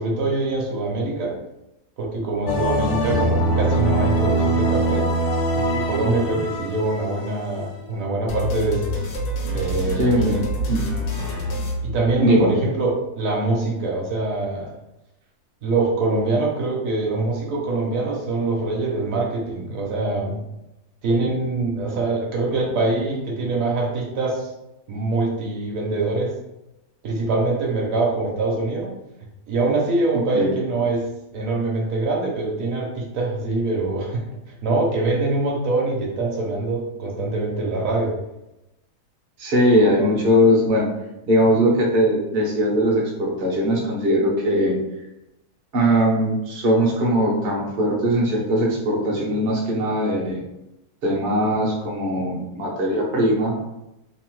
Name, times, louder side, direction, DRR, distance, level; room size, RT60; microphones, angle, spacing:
voice 1, 0.0-1.4 2.0-5.1 5.5-9.0 9.5-10.5 11.8-14.7 15.6-20.4 21.0-24.5 24.9-26.3 27.0-28.9 29.5-31.1 31.3-38.2, right 2 dB, 70° right, -2 dB, 1.0 m, -24 dB
sound 1, 2.5-7.9, right 1 dB, 65° left, 0.7 m, -22 dB
sound 2, 8.3-12.6, equal, 90° left, 1.1 m, -27 dB
voice 2, 10.0-10.9 12.2-12.5 30.3-30.5 39.4-41.0 41.3-44.8 45.7-50.4 51.0-53.5, equal, 50° right, -3 dB, 0.7 m, -20 dB
2.8 x 2.0 x 3.0 m, 0.92 s
omnidirectional pair, 1.6 m